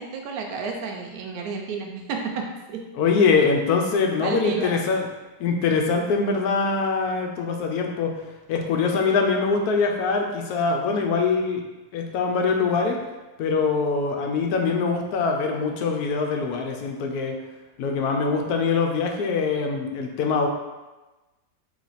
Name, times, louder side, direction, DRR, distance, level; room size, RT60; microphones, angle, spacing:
voice 1, 0.0-2.8 4.2-4.8, right 5 dB, 70° right, 1 dB, 1.0 m, -31 dB
voice 2, 3.0-5.1 5.4-8.1 8.5-11.6 11.9-13.0 13.4-17.4 17.8-20.5, left 4 dB, 70° left, 2 dB, 1.0 m, -23 dB
3.3 x 3.0 x 4.0 m, 1.1 s
omnidirectional pair, 1.8 m